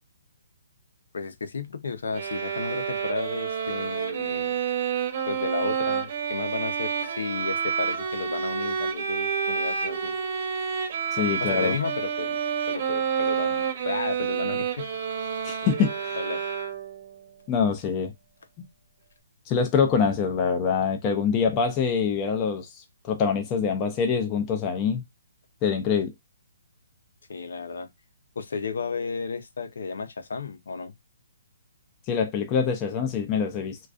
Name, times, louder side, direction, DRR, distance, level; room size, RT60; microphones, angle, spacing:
voice 1, 1.1-4.6 5.3-10.1 11.2-12.4 12.7-14.9 16.2-16.4 27.3-27.9 28.4-30.9, left 4 dB, 70° left, 0.5 m, -33 dB
sound 1, 2.1-17.1, right 7 dB, 40° right, 0.7 m, -29 dB
voice 2, 11.1-11.7 15.4-16.2 17.5-18.1 18.6-18.7 19.5-25.0 25.6-26.1 32.1-33.8, left 6 dB, 15° left, 0.4 m, -25 dB
2.4 x 2.2 x 2.4 m
hypercardioid pair, 170°, 0 cm